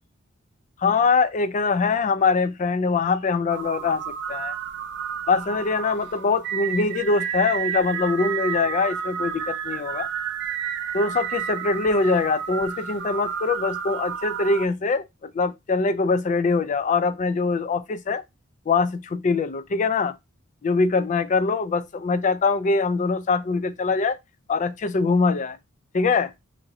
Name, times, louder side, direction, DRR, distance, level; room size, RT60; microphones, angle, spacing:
voice 1, 0.8-4.6 5.3-10.1 10.9-18.2 18.7-20.1 20.6-24.2 24.5-25.6 25.9-26.3, left 4 dB, 35° left, 0.4 m, -23 dB
sound 1, 3.5-14.7, right 8 dB, 55° right, 0.4 m, -31 dB
2.9 x 2.5 x 4.0 m
head